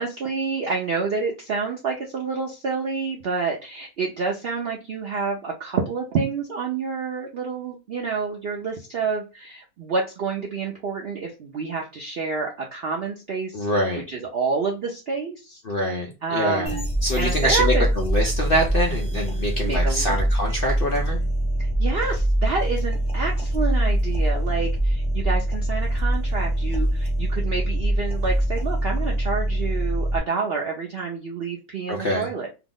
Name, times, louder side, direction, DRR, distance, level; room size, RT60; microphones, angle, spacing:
voice 1, 0.0-13.6 14.1-15.6 16.2-16.9 17.2-17.9 19.6-20.2 21.6-32.5, right 4 dB, 70° right, 0 dB, 0.5 m, -28 dB
voice 2, 13.5-14.0 15.6-16.8 17.0-21.2 31.9-32.3, equal, 60° left, 0 dB, 0.6 m, -25 dB
sound 1, 16.7-30.2, right 1 dB, 5° left, 0.9 m, -23 dB
2.8 x 2.0 x 3.6 m, 0.29 s
omnidirectional pair, 1.6 m